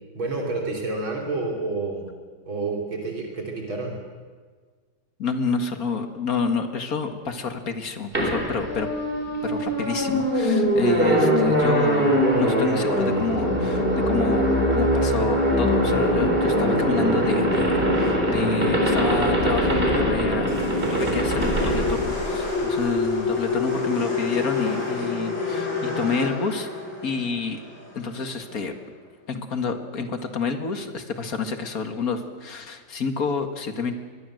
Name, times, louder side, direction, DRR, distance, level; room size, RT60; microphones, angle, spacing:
voice 1, 0.1-2.1 2.5-4.0, right 3 dB, 75° right, 0 dB, 4.4 m, -29 dB
voice 2, 5.2-8.9 9.4-26.7 27.0-27.6 27.9-28.8 29.3-33.9, left 4 dB, 45° left, 7 dB, 2.2 m, -29 dB
sound 1, 8.1-22.9, equal, 25° right, 4.0 m, -22 dB
sound 2, 20.5-28.7, left 3 dB, 80° left, 7.3 m, -28 dB
23.5 x 21.5 x 7.9 m, 1.5 s
omnidirectional pair, 2.2 m